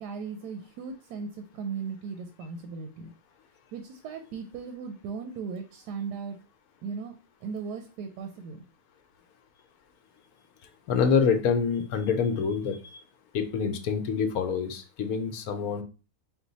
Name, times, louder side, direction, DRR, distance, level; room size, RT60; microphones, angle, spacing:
voice 1, 0.0-3.1 3.7-6.4 6.8-7.1 7.4-8.6, right 5 dB, 85° right, 6 dB, 1.2 m, -37 dB
voice 2, 10.9-12.8 13.3-15.8, left 6 dB, 75° left, 7 dB, 1.0 m, -26 dB
4.6 x 2.2 x 3.9 m, 0.34 s
omnidirectional pair, 1.7 m